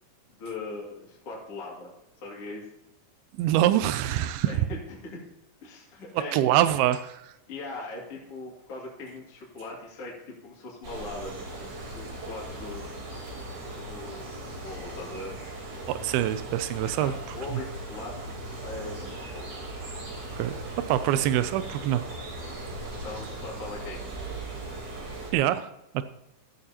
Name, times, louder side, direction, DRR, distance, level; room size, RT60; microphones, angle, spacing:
voice 1, 0.4-2.7 4.5-5.3 5.6-6.5 7.5-12.8 13.8-15.4 17.0-18.3 18.6-19.5 23.0-24.0, left 3 dB, 40° left, -4 dB, 3.1 m, -40 dB
voice 2, 3.3-4.7 6.3-7.3 15.9-17.1 20.3-20.6 20.9-22.1 25.3-26.0, right 12 dB, 90° right, 11 dB, 2.5 m, -25 dB
sound 1, 10.8-25.3, right 2 dB, 50° right, 4.7 m, -38 dB
15.5 x 13.0 x 2.9 m, 0.91 s
omnidirectional pair, 4.3 m